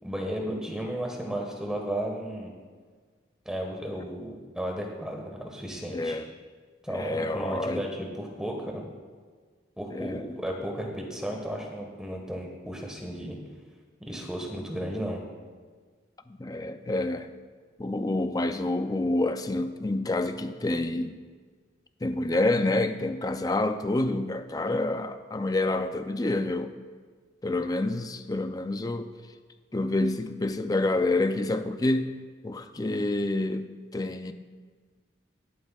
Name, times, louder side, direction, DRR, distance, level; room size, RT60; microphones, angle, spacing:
voice 1, 0.0-2.5 3.4-6.2 6.8-8.8 9.8-13.4 14.0-15.2, equal, 5° right, 0 dB, 1.4 m, -34 dB
voice 2, 5.9-6.3 6.9-7.9 9.9-10.4 16.3-17.3 17.8-21.2 22.0-26.7 27.4-29.1 29.7-32.1 32.4-34.3, left 2 dB, 20° left, 9 dB, 0.4 m, -28 dB
21.5 x 7.7 x 2.4 m, 1.6 s
head